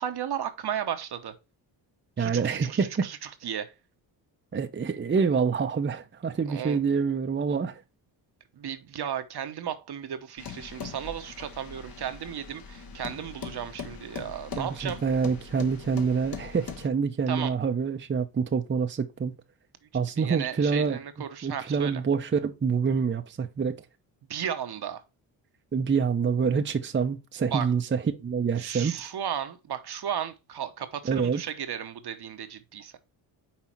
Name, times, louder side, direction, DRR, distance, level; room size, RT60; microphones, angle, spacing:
voice 1, 0.0-1.3 2.2-3.2 3.4-3.7 6.5-6.8 8.6-15.0 17.3-17.5 20.2-22.0 24.3-25.0 27.5-27.7 28.6-32.9, right 9 dB, 50° right, 1.0 m, -34 dB
voice 2, 2.2-3.1 4.5-7.8 14.6-19.3 19.9-21.0 21.4-23.8 25.7-29.0 31.0-31.4, right 5 dB, 25° right, 0.7 m, -26 dB
sound 1, 10.4-16.9, left 6 dB, 45° left, 1.2 m, -41 dB
5.7 x 4.0 x 4.4 m
supercardioid pair, 50°, 49 cm